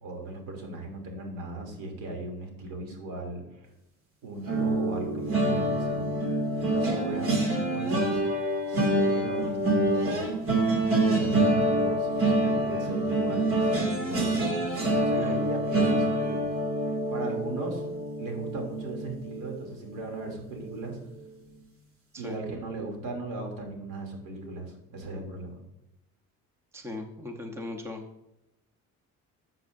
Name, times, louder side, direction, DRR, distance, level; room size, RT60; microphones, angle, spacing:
voice 1, 0.0-3.4 4.2-6.1 6.6-8.2 8.7-10.3 10.9-14.4 14.9-16.5 17.1-17.8 18.2-21.0 22.2-25.6, right 2 dB, 85° right, 2 dB, 2.8 m, -37 dB
sound 1, 4.4-19.6 20.0-20.3 20.5-20.8, right 1 dB, 45° right, 2.4 m, -26 dB
voice 2, 15.1-15.5 22.1-22.4 26.7-28.0, left 2 dB, 10° right, 4 dB, 0.8 m, -38 dB
12.5 x 7.6 x 2.6 m, 0.92 s
cardioid pair, 165°, 31 cm